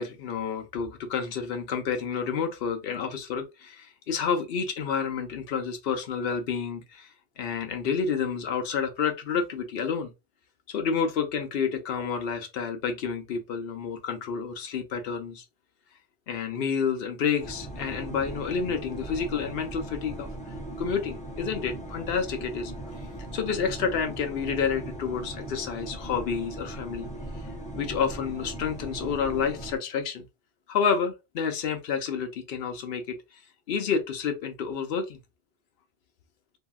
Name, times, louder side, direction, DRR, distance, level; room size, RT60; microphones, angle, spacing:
voice 1, 0.0-7.1 7.4-10.1 10.7-15.4 16.3-20.3 20.8-22.7 23.3-27.1 27.7-30.3 30.7-33.2 33.7-35.2, left 6 dB, 65° left, 0.8 m, -29 dB
sound 1, 17.4-29.8, right 1 dB, 10° left, 0.6 m, -39 dB
2.7 x 2.7 x 2.3 m
omnidirectional pair, 1.1 m